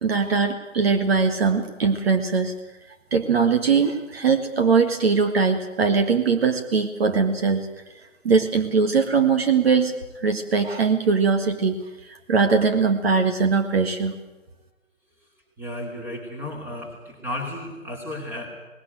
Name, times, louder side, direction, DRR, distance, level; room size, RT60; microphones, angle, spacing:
voice 1, 0.0-2.5 3.1-7.7 8.2-11.8 12.0-14.1, right 5 dB, 50° right, 7 dB, 1.8 m, -21 dB
voice 2, 15.6-18.5, left 1 dB, 5° right, 1 dB, 2.8 m, -33 dB
19.0 x 17.5 x 9.1 m, 1.1 s
hypercardioid pair, 155°, 40 cm